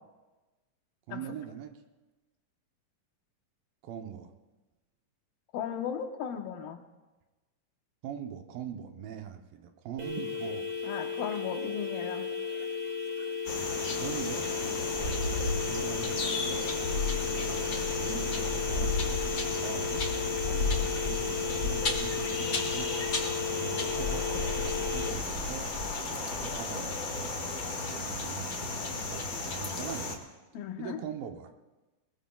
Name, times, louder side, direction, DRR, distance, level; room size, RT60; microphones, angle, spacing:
voice 1, 1.1-1.7 3.8-4.3 8.0-10.7 14.0-14.5 14.9-16.7 17.2-19.0 19.5-20.1 20.4-22.9 23.5-25.7 26.1-28.5 28.9-30.2 30.8-31.5, right 9 dB, 80° right, 5 dB, 2.7 m, -42 dB
voice 2, 5.5-6.8 10.8-12.3 30.5-31.0, left 8 dB, 85° left, 5 dB, 2.9 m, -36 dB
sound 1, 10.0-25.1, left 5 dB, 45° right, 1.9 m, -34 dB
sound 2, 13.4-30.1, left 3 dB, 60° left, 0.9 m, -33 dB
21.5 x 21.0 x 2.3 m, 1.1 s
omnidirectional pair, 4.0 m